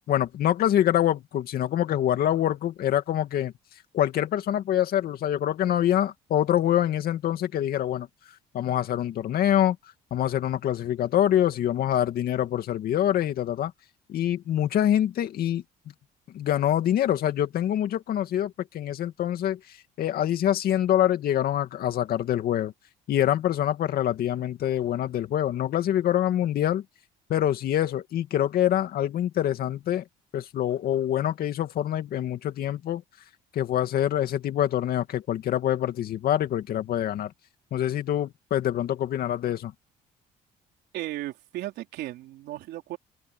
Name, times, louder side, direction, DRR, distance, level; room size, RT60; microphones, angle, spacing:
voice 1, 0.1-3.5 3.9-8.1 8.5-9.8 10.1-13.7 14.1-15.6 16.3-19.6 20.0-22.7 23.1-26.8 27.3-30.0 30.3-33.0 33.5-37.3 37.7-39.7, left 11 dB, 65° left, 2.4 m, -25 dB
voice 2, 40.9-43.0, right 15 dB, 80° right, 3.8 m, -35 dB
open air
cardioid pair, 110°, 17 cm